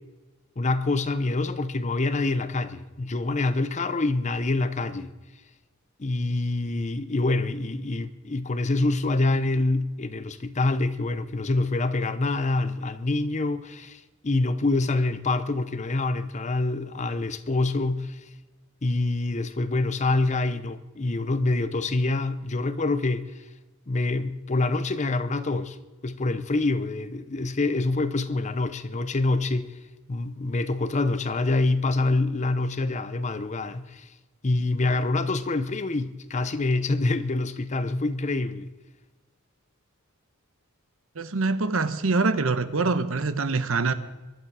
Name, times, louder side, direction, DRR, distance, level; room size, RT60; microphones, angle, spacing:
voice 1, 0.6-5.1 6.0-18.2 18.8-23.3 23.9-25.8 26.0-29.7 30.1-34.1 34.4-38.7, left 2 dB, 35° left, 0.7 m, -26 dB
voice 2, 41.2-43.9, right 3 dB, 70° right, 1.0 m, -24 dB
22.5 x 11.5 x 4.8 m
head